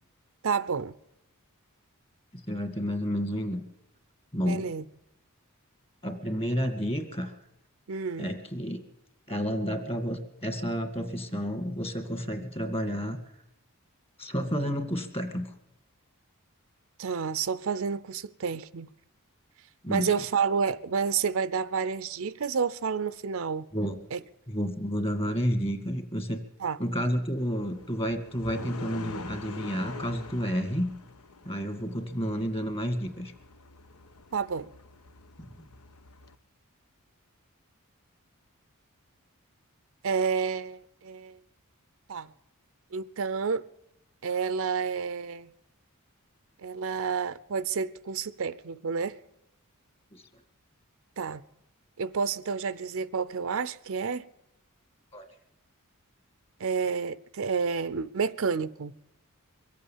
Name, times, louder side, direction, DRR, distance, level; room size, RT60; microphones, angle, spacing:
voice 1, 0.4-0.9 4.4-4.8 7.9-8.3 17.0-18.9 19.9-23.7 24.1-24.2 26.6-26.8 34.3-34.7 40.0-41.4 42.1-42.3 42.9-43.6 44.2-45.5 46.6-49.2 51.2-51.4 52.0-54.3 56.6-58.9, right 5 dB, 65° right, 0.6 m, -30 dB
voice 2, 2.3-3.6 4.3-4.7 6.0-7.4 8.2-8.8 9.3-13.2 14.2-15.5 19.8-20.1 23.7-24.1 24.5-26.4 26.8-30.9 31.5-33.3 35.4-35.5 50.1-50.2 55.1-55.3, equal, 25° left, 2.1 m, -30 dB
sound 1, 27.4-36.4, left 4 dB, 80° left, 0.9 m, -46 dB
23.0 x 8.5 x 7.2 m
head